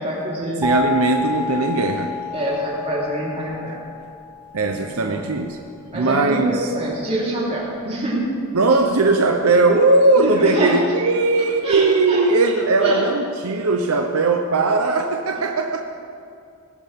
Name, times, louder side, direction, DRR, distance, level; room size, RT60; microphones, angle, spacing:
voice 1, 0.0-0.7 2.3-3.8 4.7-5.3 5.9-8.3 10.2-10.7 11.6-12.2 12.8-13.0, right 1 dB, 30° right, -6 dB, 3.8 m, -25 dB
sound 1, 0.6-5.4, left 5 dB, 10° right, 1.5 m, -29 dB
voice 2, 0.6-2.2 4.5-5.6 5.9-6.7 8.5-15.8, right 3 dB, 80° right, 4 dB, 0.8 m, -19 dB
19.5 x 11.5 x 3.6 m, 2.4 s
head